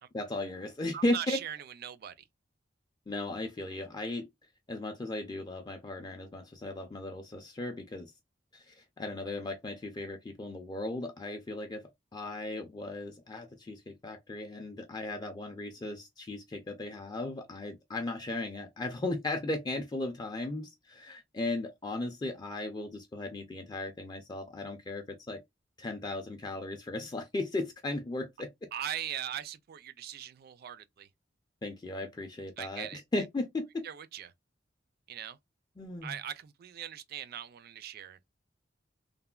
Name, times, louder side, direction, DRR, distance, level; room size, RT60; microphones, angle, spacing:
voice 1, 0.1-1.4 3.1-4.3 4.7-8.1 8.5-11.8 12.1-25.4 25.8-28.5 31.6-33.8 35.8-36.2, left 2 dB, 20° left, 0.4 m, -36 dB
voice 2, 0.9-2.1 28.7-31.1 32.6-33.0 33.8-34.3 35.1-35.4 36.0-38.2, right 10 dB, 55° right, 0.3 m, -40 dB
3.2 x 2.1 x 2.2 m
head